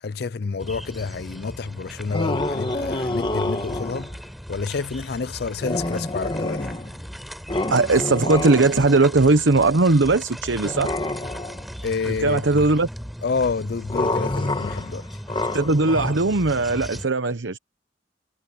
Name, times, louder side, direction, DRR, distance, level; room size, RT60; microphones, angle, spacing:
voice 1, 0.0-4.1 4.5-6.8 11.8-12.7 13.2-15.1, left 4 dB, 60° left, 0.5 m, -29 dB
sound 1, 0.6-17.1, equal, ahead, 4.1 m, -38 dB
sound 2, 2.1-4.2 5.6-7.1 7.5-9.2 10.6-11.7 13.9-16.1, left 2 dB, 25° left, 1.5 m, -28 dB
voice 2, 7.7-10.9 12.2-12.9 15.5-17.6, right 3 dB, 90° right, 1.0 m, -19 dB
head